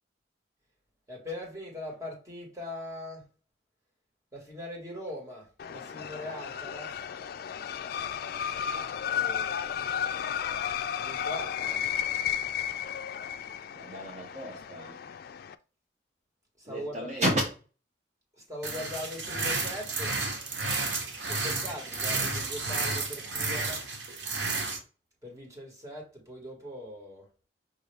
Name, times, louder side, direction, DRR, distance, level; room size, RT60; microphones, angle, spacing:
voice 1, 1.1-3.2 4.3-6.9 9.1-9.8 10.9-11.8 16.6-17.1 18.5-20.2 21.3-23.8 25.2-27.3, left 1 dB, 20° right, 1.6 m, -41 dB
sound 1, 5.6-15.6, left 8 dB, 55° left, 0.3 m, -33 dB
voice 2, 13.7-15.0 16.7-17.5, equal, 40° right, 0.9 m, -31 dB
sound 2, 18.6-24.8, right 3 dB, 85° right, 1.0 m, -32 dB
5.6 x 2.6 x 3.3 m
head